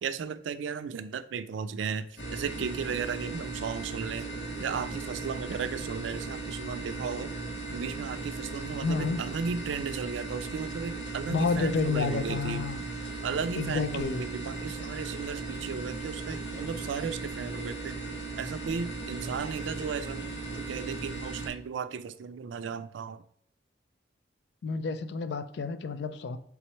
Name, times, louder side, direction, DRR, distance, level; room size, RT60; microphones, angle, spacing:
voice 1, 0.0-2.1 2.3-4.3 4.6-7.3 7.7-12.6 13.2-18.0 18.4-23.2, right 6 dB, 85° right, 12 dB, 0.3 m, -35 dB
sound 1, 2.2-21.5, right 3 dB, 80° left, 1.1 m, -37 dB
voice 2, 8.8-9.2 11.3-12.8 13.6-14.2 24.6-26.4, left 4 dB, 65° left, 12 dB, 0.4 m, -30 dB
4.3 x 3.6 x 3.0 m, 0.68 s
head